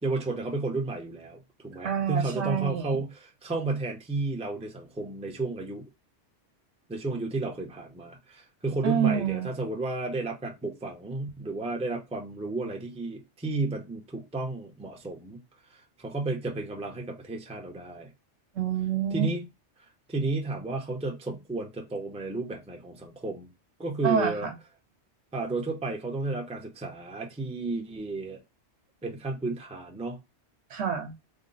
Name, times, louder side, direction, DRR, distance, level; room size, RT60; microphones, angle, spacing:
voice 1, 0.0-5.8 6.9-15.4 16.0-18.1 19.1-19.4 20.1-23.5 23.8-24.5 25.3-28.4 29.0-30.2, right 3 dB, 5° right, 0.5 m, -32 dB
voice 2, 1.8-3.0 8.8-9.5 18.5-19.3 24.0-24.5 30.7-31.1, right 8 dB, 70° right, 1.1 m, -27 dB
3.6 x 2.1 x 3.8 m
omnidirectional pair, 1.2 m